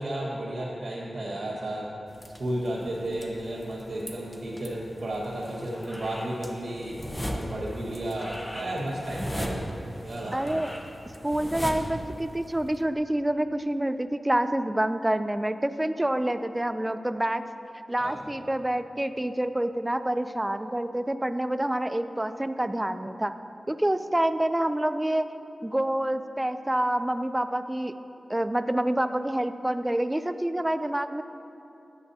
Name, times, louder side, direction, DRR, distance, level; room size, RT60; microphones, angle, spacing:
voice 1, 0.0-1.9 2.4-7.0 7.3-9.7 10.0-10.6 18.0-18.2, right 1 dB, 65° right, -10 dB, 1.5 m, -33 dB
sound 1, 2.1-12.8, equal, 15° left, 0.8 m, -38 dB
voice 2, 10.3-10.7 11.2-17.4 17.9-23.3 23.7-25.3 25.6-27.9 28.3-31.2, right 1 dB, 15° right, 10 dB, 0.3 m, -27 dB
11.0 x 7.8 x 2.7 m, 2.9 s
cardioid pair, 60°, 0 cm